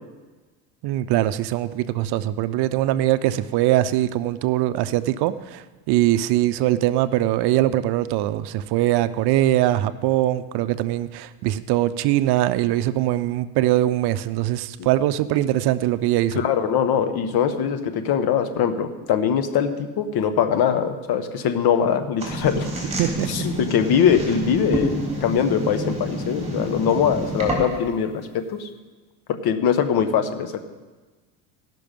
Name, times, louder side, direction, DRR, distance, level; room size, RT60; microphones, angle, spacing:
voice 1, 0.8-16.4 23.0-23.5, right 14 dB, 55° right, 13 dB, 0.6 m, -22 dB
voice 2, 16.3-22.7 23.3-28.7 29.4-30.6, left 8 dB, 50° left, 9 dB, 1.3 m, -22 dB
sound 1, 22.2-27.9, right 1 dB, 15° right, 3.4 m, -28 dB
16.5 x 6.0 x 5.3 m, 1.3 s
supercardioid pair, 95°, 47 cm